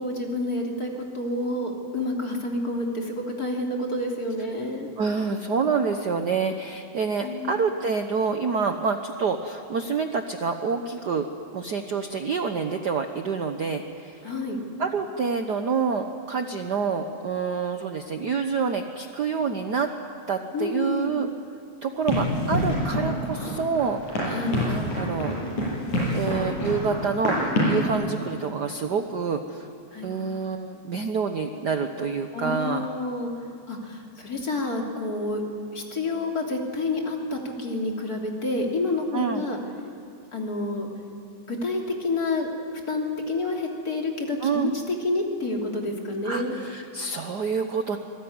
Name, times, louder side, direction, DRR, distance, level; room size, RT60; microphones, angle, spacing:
voice 1, 0.0-4.9 7.2-7.6 14.2-14.6 20.5-21.2 24.3-24.6 29.9-30.1 32.3-33.3 33.7-35.4 35.7-39.6 40.3-40.9 41.5-42.5 42.9-46.5, left 2 dB, 30° left, 0 dB, 3.4 m, -29 dB
voice 2, 5.0-11.3 11.5-14.3 14.8-19.9 20.3-21.3 21.8-25.3 26.1-29.7 30.0-32.9 39.1-39.4 44.4-44.7 46.2-48.0, right 5 dB, 70° right, 6 dB, 0.9 m, -27 dB
Run, 22.1-27.9, left 1 dB, 85° left, 9.3 m, -26 dB
26.5 x 21.0 x 9.6 m, 2.5 s
omnidirectional pair, 3.4 m